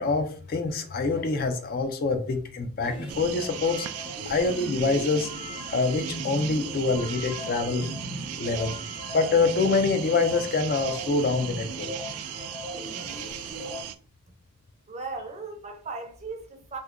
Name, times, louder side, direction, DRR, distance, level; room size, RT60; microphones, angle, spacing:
voice 1, 0.0-3.9 4.3-5.3 5.7-7.9 8.4-8.7 9.1-11.9, left 3 dB, 40° left, 0.3 m, -25 dB
sound 1, 2.8-13.8, equal, 25° left, 0.7 m, -38 dB
sound 2, 3.1-14.0, right 10 dB, 85° right, 0.3 m, -37 dB
voice 2, 14.9-16.8, right 3 dB, 30° right, 0.5 m, -37 dB
2.7 x 2.4 x 3.5 m
head